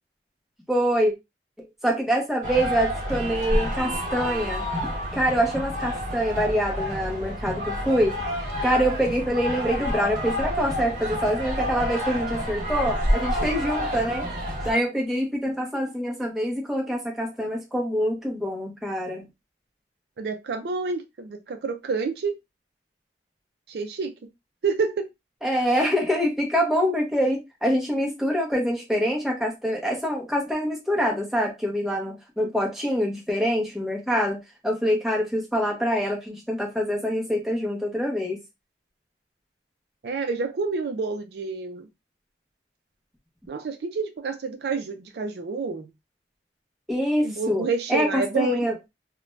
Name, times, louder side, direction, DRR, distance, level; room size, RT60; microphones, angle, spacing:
voice 1, 0.7-1.1 1.8-4.7 5.1-8.2 8.6-14.3 14.6-19.2 25.4-38.4 46.9-48.7, equal, ahead, 0.7 m, -25 dB
sound 1, 2.4-14.7, equal, 45° right, 0.8 m, -29 dB
voice 2, 20.2-22.3 23.7-24.1 24.6-25.1 40.0-41.9 43.5-45.9 47.2-48.7, right 4 dB, 65° right, 0.4 m, -28 dB
2.5 x 2.1 x 3.1 m
head